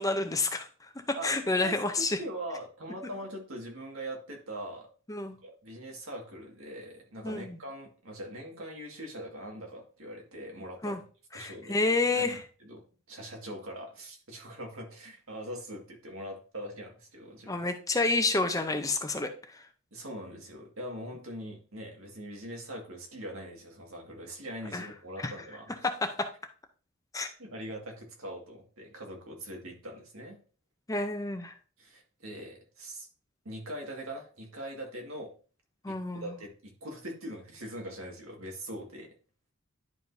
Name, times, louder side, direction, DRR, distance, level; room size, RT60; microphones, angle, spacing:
voice 1, 0.0-2.2 5.1-5.4 7.2-7.6 10.8-11.0 11.3-12.4 17.5-19.6 24.7-24.9 25.2-25.3 25.8-26.3 27.1-27.3 30.9-31.5 35.8-36.2, left 3 dB, 15° left, 7 dB, 0.6 m, -29 dB
voice 2, 1.2-4.9 5.4-11.0 11.3-11.8 12.1-12.8 13.1-17.7 19.9-25.7 27.4-30.4 31.8-33.1 33.5-35.3 35.9-39.1, right 1 dB, 75° right, 1 dB, 1.9 m, -42 dB
10.5 x 5.0 x 2.7 m, 0.38 s
head